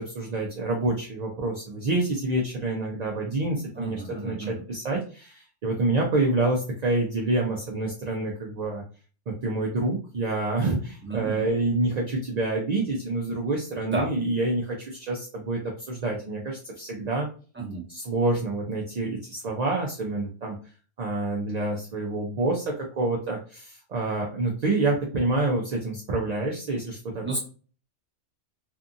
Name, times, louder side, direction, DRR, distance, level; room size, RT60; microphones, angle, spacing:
voice 1, 0.0-8.8 9.3-17.3 17.9-20.5 21.0-27.2, right 2 dB, 55° right, -1 dB, 0.4 m, -27 dB
voice 2, 3.7-4.6 11.0-11.5 13.9-14.1 17.6-17.8 27.2-27.4, right 3 dB, 10° right, -3 dB, 0.8 m, -32 dB
2.6 x 2.4 x 2.5 m, 0.38 s
omnidirectional pair, 1.3 m